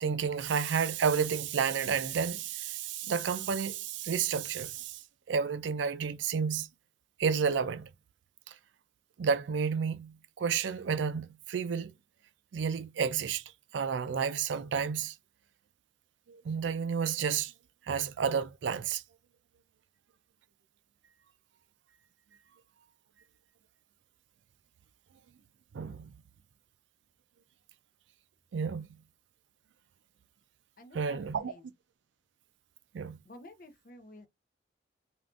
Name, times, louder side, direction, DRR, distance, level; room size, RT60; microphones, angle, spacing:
voice 1, 0.0-5.0 5.3-6.7 7.2-7.9 9.2-11.9 12.5-13.4 13.7-15.1 16.3-17.5 17.9-19.0 25.7-26.1 28.5-28.9 30.9-31.5 32.9-33.2, right 6 dB, 85° right, 0.4 m, -31 dB
voice 2, 30.8-31.7 33.2-34.3, left 1 dB, 50° left, 0.6 m, -51 dB
3.5 x 2.5 x 2.3 m
head